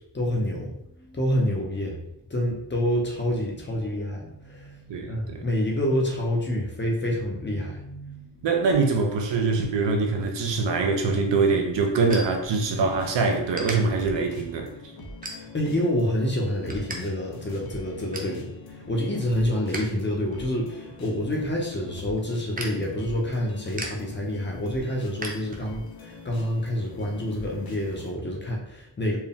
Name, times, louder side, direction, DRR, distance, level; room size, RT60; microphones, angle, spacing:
voice 1, 0.1-8.5 15.2-29.2, equal, 25° left, 0.7 m, -28 dB
voice 2, 4.9-5.4 8.4-14.7, right 4 dB, 80° right, 0.7 m, -24 dB
sound 1, 11.0-13.0 13.5-13.8 14.3-14.6 15.2-15.8 16.2-17.0 17.3-17.4 17.7-18.4 18.8-19.9 20.2-26.0, right 2 dB, 20° right, 0.5 m, -39 dB
sound 2, 12.4-28.1, left 2 dB, 55° left, 0.8 m, -44 dB
4.4 x 2.2 x 3.5 m
wide cardioid pair, 155°, 43 cm